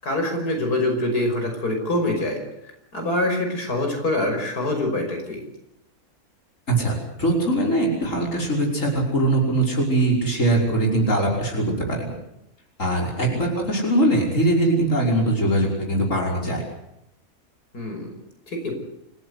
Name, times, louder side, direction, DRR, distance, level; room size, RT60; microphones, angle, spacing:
voice 1, 0.0-2.4 2.9-5.4 13.2-13.4 17.7-18.1 18.5-18.7, left 1 dB, 80° left, 3 dB, 6.2 m, -25 dB
voice 2, 6.7-12.1 12.8-16.6, right 1 dB, 55° left, 0 dB, 6.0 m, -21 dB
29.0 x 16.0 x 8.3 m, 0.80 s
omnidirectional pair, 1.6 m